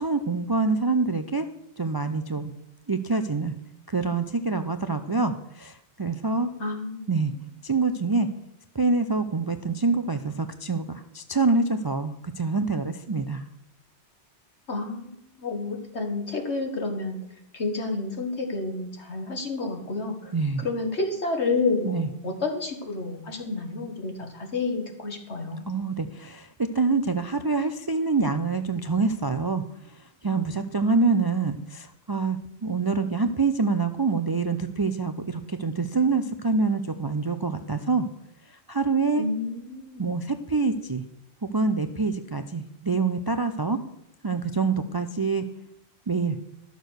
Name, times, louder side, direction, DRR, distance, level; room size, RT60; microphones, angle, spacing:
voice 1, 0.0-1.5 1.8-2.5 2.9-3.5 3.9-6.5 7.1-7.3 7.6-8.3 8.7-13.4 20.3-20.6 21.8-22.1 25.7-38.1 38.5-39.2 40.0-41.0 41.5-43.8 44.2-45.4 46.1-46.4, right 4 dB, 35° right, 9 dB, 0.3 m, -26 dB
voice 2, 6.6-7.0 14.7-17.2 17.5-20.3 20.6-25.7 39.2-40.1, left 3 dB, 75° left, 4 dB, 2.0 m, -30 dB
12.5 x 6.6 x 6.4 m, 0.82 s
omnidirectional pair, 1.1 m